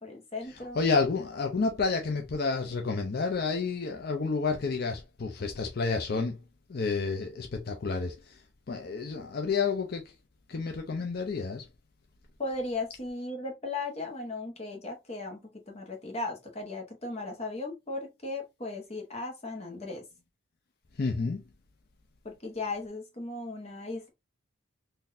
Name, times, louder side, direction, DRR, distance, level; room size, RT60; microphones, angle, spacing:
voice 1, 0.0-0.8 12.4-20.0 22.2-24.1, left 2 dB, 30° left, 1.0 m, -37 dB
voice 2, 0.8-6.4 6.7-8.3 8.7-10.0 10.5-11.6 21.0-21.4, left 4 dB, 45° left, 0.5 m, -30 dB
3.9 x 2.6 x 2.6 m
head